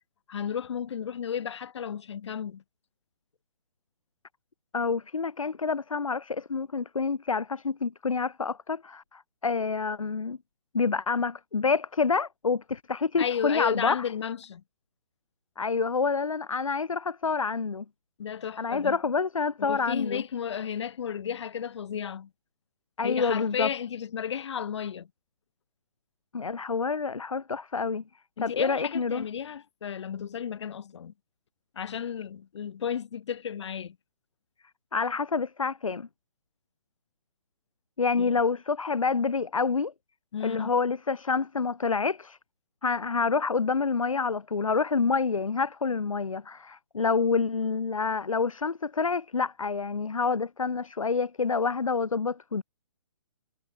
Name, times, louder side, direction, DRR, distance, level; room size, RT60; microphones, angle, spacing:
voice 1, 0.3-2.6 13.2-14.6 18.2-19.0 19.6-22.3 23.0-25.1 28.4-31.1 31.7-34.0 38.2-38.3 40.3-40.7, left 8 dB, 55° left, 6.3 m, -33 dB
voice 2, 4.7-10.4 10.7-14.0 15.6-17.8 18.6-20.2 23.0-23.7 26.3-28.0 28.4-29.2 34.9-36.1 38.0-39.9 40.4-42.4 42.8-52.6, left 4 dB, 80° left, 2.8 m, -27 dB
figure-of-eight pair, 140°, 17 cm